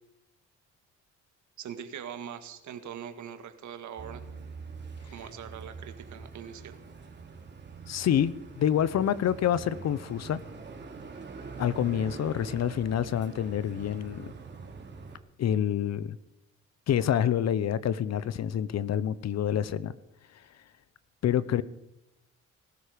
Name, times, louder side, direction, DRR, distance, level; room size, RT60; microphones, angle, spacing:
voice 1, 1.6-4.2 5.0-6.8, right 8 dB, 70° right, 8 dB, 1.8 m, -42 dB
sound 1, 4.0-15.2, right 4 dB, 35° right, 2.7 m, -44 dB
voice 2, 7.9-10.4 11.6-14.3 15.4-16.2 16.9-19.9 21.2-21.6, left 9 dB, 60° left, 17 dB, 0.8 m, -27 dB
19.5 x 13.0 x 5.2 m, 0.86 s
cardioid pair, 90°, 30 cm